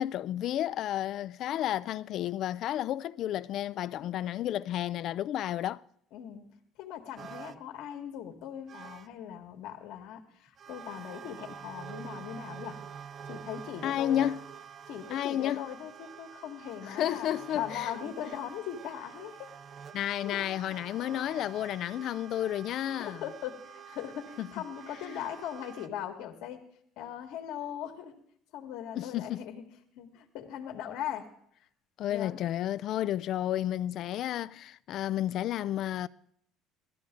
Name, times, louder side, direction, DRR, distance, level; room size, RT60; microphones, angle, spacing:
voice 1, 0.0-5.8 13.8-14.4 15.1-15.6 16.9-17.9 19.9-23.2 24.4-24.5 25.0-25.2 29.0-29.4 32.0-36.1, left 12 dB, 50° left, 0.4 m, -31 dB
voice 2, 6.1-6.5 6.8-12.8 13.2-14.3 14.9-17.3 17.5-19.5 20.2-20.6 23.0-26.6 27.0-28.2 28.5-29.6 30.0-31.3 32.1-32.4, left 10 dB, 70° left, 1.9 m, -40 dB
sound 1, 7.2-7.7 8.3-8.4 8.7-9.1 10.6-25.9, right 7 dB, 35° right, 0.6 m, -47 dB
17.0 x 13.5 x 3.8 m
cardioid pair, 135°, 0 cm